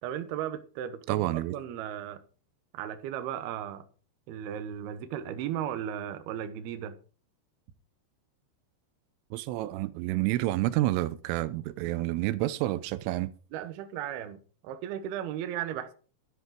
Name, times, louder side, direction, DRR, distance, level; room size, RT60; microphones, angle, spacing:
voice 1, 0.0-2.2 2.7-3.8 4.3-7.0 13.5-15.9, right 10 dB, 70° right, 2.6 m, -36 dB
voice 2, 1.1-1.5 9.3-13.3, right 16 dB, 90° right, 3.2 m, -29 dB
11.5 x 8.2 x 5.0 m
omnidirectional pair, 5.6 m